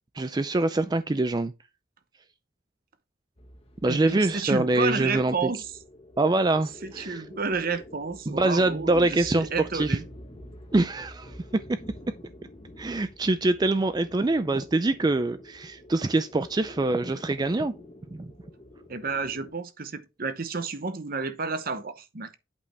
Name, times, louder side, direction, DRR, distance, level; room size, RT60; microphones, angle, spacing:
voice 1, 0.2-1.5 3.8-5.3 6.2-7.2 8.3-10.0 10.7-11.8 12.8-17.7 18.1-18.3, right 2 dB, 20° right, 0.4 m, -24 dB
sound 1, 3.4-19.5, left 1 dB, 30° left, 1.2 m, -47 dB
voice 2, 3.9-5.7 6.8-10.0 18.9-22.3, right 4 dB, 50° right, 0.9 m, -31 dB
8.4 x 5.2 x 3.3 m
head